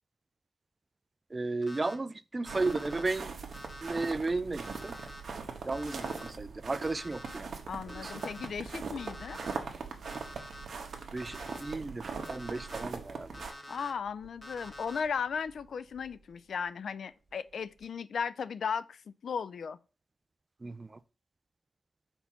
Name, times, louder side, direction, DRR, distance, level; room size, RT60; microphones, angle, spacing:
voice 1, 1.3-3.3 3.8-5.0 5.6-7.5 8.0-8.1 11.1-13.3 20.6-21.0, right 3 dB, 30° right, 0.4 m, -34 dB
Alarm, 1.6-1.9 2.5-3.0 3.5-4.1 4.6-5.2 5.7-6.3 6.8-7.4 7.9-8.5 9.0-9.6 10.1-10.7 11.2-11.7 12.2-12.8 13.3-13.9 14.4-15.0, equal, 20° left, 1.2 m, -47 dB
sound 1, 2.4-13.5, right 5 dB, 60° right, 1.1 m, -41 dB
voice 2, 7.7-9.4 13.7-19.8, left 6 dB, 70° left, 0.3 m, -36 dB
Camera, 10.2-17.9, right 3 dB, 5° right, 2.3 m, -58 dB
4.3 x 4.1 x 5.7 m
cardioid pair, 85°, 0 cm